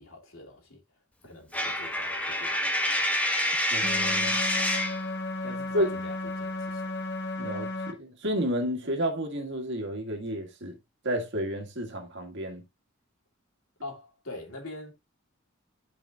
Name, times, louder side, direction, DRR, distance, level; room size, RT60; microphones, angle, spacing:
voice 1, 0.0-3.1 4.5-4.7 5.4-6.9 13.8-14.9, left 2 dB, 80° left, 2.6 m, -45 dB
Coin (dropping), 1.5-5.0, left 1 dB, 5° left, 1.1 m, -27 dB
voice 2, 3.7-4.4 5.7-5.9 7.4-10.8 11.0-12.6, equal, 60° right, 1.9 m, -31 dB
sound 1, 3.8-7.9, left 2 dB, 55° left, 1.4 m, -34 dB
12.5 x 5.0 x 2.4 m
head